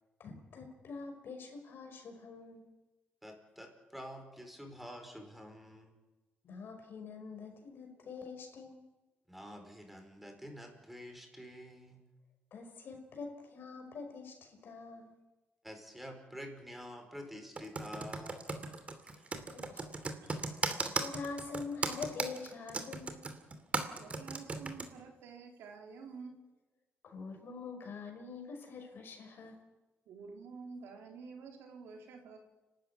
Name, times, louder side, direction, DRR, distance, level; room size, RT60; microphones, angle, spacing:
voice 1, 0.2-2.7 6.4-8.8 12.5-15.2 19.3-20.2 20.5-23.3 27.0-29.6, left 4 dB, 60° left, 4 dB, 5.6 m, -45 dB
voice 2, 3.2-5.9 9.3-12.0 15.6-18.6 19.1-19.3, equal, 5° right, 4 dB, 5.1 m, -48 dB
Computer keyboard, 17.6-24.9, right 3 dB, 30° right, 2.7 m, -36 dB
voice 3, 24.0-26.4 30.1-32.4, right 5 dB, 85° right, 2 dB, 4.0 m, -49 dB
29.5 x 13.0 x 9.7 m, 1.1 s
cardioid pair, 105°, 4 cm